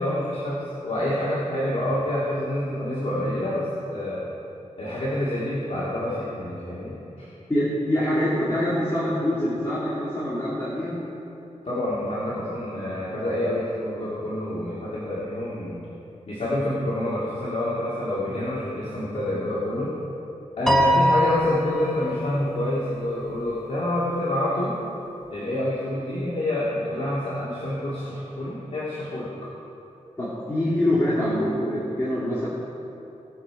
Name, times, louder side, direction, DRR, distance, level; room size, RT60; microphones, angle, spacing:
voice 1, 0.0-4.2 4.8-7.3 11.6-15.9 16.3-19.9 20.6-24.8 25.3-29.3, left 1 dB, 60° left, -9 dB, 2.4 m, -27 dB
voice 2, 7.5-11.0 30.2-32.5, left 1 dB, 20° left, -8 dB, 2.5 m, -24 dB
Piano, 20.7-22.2, equal, 5° left, 1.2 m, -22 dB
18.5 x 6.9 x 4.8 m, 3.0 s
wide cardioid pair, 100°, 12 cm